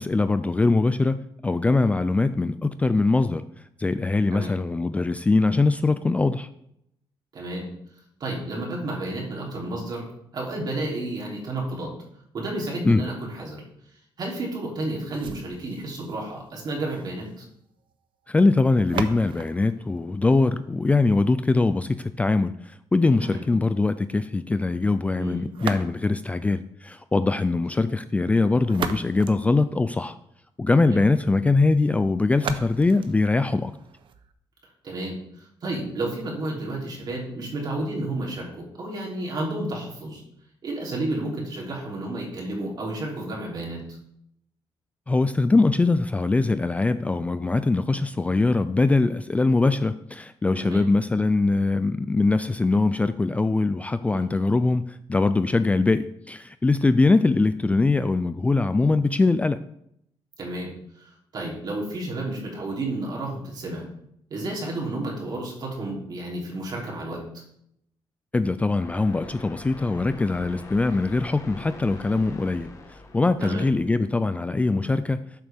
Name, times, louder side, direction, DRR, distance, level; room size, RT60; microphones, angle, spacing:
voice 1, 0.0-3.4 3.8-6.5 12.8-13.0 18.3-30.2 30.6-33.7 45.1-59.6 68.3-75.2, left 3 dB, 15° left, 12 dB, 0.3 m, -22 dB
voice 2, 7.3-7.7 8.2-10.1 10.3-11.9 12.3-13.6 14.2-17.4 23.2-23.4 25.2-25.5 30.8-31.0 34.8-40.2 40.6-44.0 50.6-50.8 54.1-54.3 60.4-60.7 61.0-63.9 64.3-67.2 73.4-73.6, right 2 dB, 50° right, -2 dB, 3.3 m, -31 dB
sound 1, 15.1-21.1 25.5-26.4 28.4-30.3 32.3-34.3, right 7 dB, 65° right, 0.8 m, -37 dB
sound 2, 68.8-74.2, left 2 dB, 35° left, 1.6 m, -43 dB
13.0 x 7.6 x 3.6 m, 0.75 s
cardioid pair, 140°, 9 cm